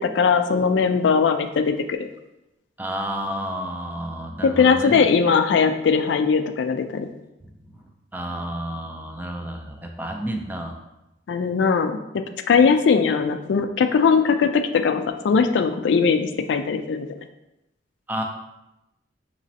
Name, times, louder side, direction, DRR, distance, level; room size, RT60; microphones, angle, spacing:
voice 1, 0.0-2.0 4.4-7.1 11.3-12.0 12.5-17.1, left 5 dB, 85° left, 8 dB, 0.3 m, -20 dB
voice 2, 2.8-5.1 7.4-7.8 8.1-10.7 18.1-18.2, right 1 dB, 10° right, 2 dB, 0.4 m, -31 dB
5.0 x 3.0 x 2.7 m, 0.93 s
head